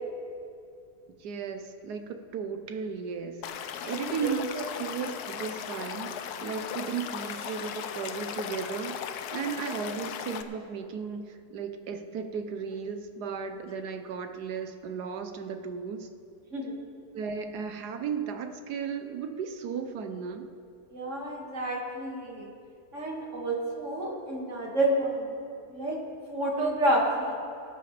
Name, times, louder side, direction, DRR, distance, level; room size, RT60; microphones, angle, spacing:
voice 1, 1.2-9.0 9.3-16.1 17.1-20.5, right 6 dB, 80° right, 7 dB, 1.4 m, -35 dB
Stream / Liquid, 3.4-10.4, left 8 dB, 75° left, 1.2 m, -37 dB
voice 2, 20.9-22.5 22.9-25.3 25.7-26.0 26.3-27.4, right 1 dB, 50° right, -2 dB, 2.5 m, -29 dB
20.0 x 11.5 x 3.4 m, 2.4 s
omnidirectional pair, 1.7 m